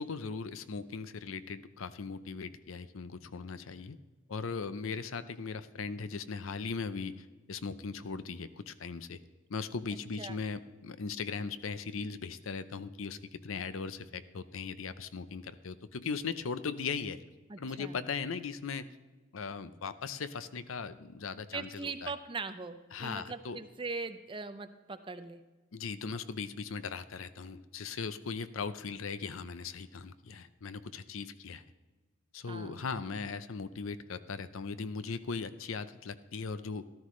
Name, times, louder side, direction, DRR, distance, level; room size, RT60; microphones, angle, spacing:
voice 1, 0.0-4.0 4.3-9.2 9.5-17.2 17.6-18.9 19.3-22.1 22.9-23.6 25.7-31.6 32.3-36.8, left 5 dB, 75° left, 13 dB, 0.6 m, -38 dB
voice 2, 17.5-18.0 21.5-25.4 32.5-32.9, right 4 dB, 25° right, 9 dB, 0.5 m, -40 dB
13.5 x 13.0 x 3.2 m, 1.3 s
head